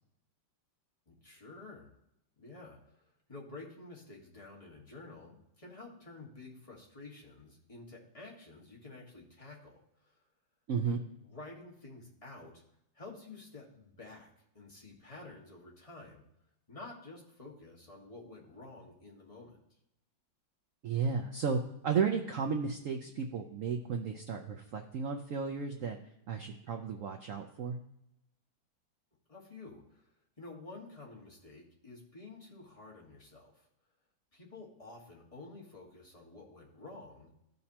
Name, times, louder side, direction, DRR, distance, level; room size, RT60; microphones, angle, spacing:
voice 1, 1.1-1.9 2.4-10.2 10.8-12.6 12.9-14.3 14.5-16.2 16.7-19.6 29.3-30.1 30.4-33.7 34.3-37.3, left 3 dB, 20° left, -3 dB, 1.5 m, -50 dB
voice 2, 10.7-11.0 20.8-26.0 26.3-27.8, right 6 dB, 75° right, 4 dB, 0.7 m, -33 dB
14.0 x 5.3 x 2.9 m, 0.83 s
omnidirectional pair, 2.1 m